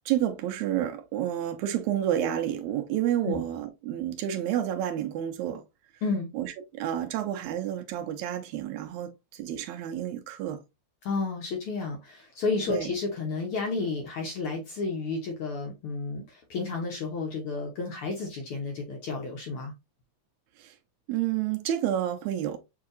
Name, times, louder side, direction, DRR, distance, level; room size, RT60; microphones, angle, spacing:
voice 1, 0.1-5.6 6.3-10.6 12.7-12.9 20.6-20.8 21.1-22.6, right 11 dB, 80° right, 2.0 m, -30 dB
voice 2, 11.0-19.7, left 4 dB, 65° left, 1.4 m, -31 dB
6.7 x 2.7 x 2.5 m
omnidirectional pair, 3.3 m